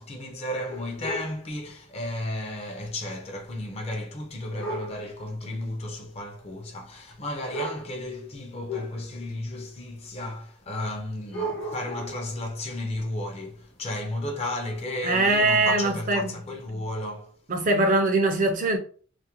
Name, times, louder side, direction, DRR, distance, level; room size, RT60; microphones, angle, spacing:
voice 1, 0.0-17.4, left 1 dB, 30° left, 0.4 m, -33 dB
sound 1, 0.7-1.4 2.6-2.8 3.1-3.2 4.6-5.0 6.0-6.1 7.1-7.2 7.5-8.0 8.7-9.3 10.1-10.2 11.2-12.3 14.8-14.9 15.5-15.6 16.5-16.6, right 1 dB, 80° left, 0.8 m, -34 dB
voice 2, 15.0-16.3 17.5-18.8, right 2 dB, 40° right, 0.4 m, -22 dB
2.3 x 2.1 x 2.9 m
head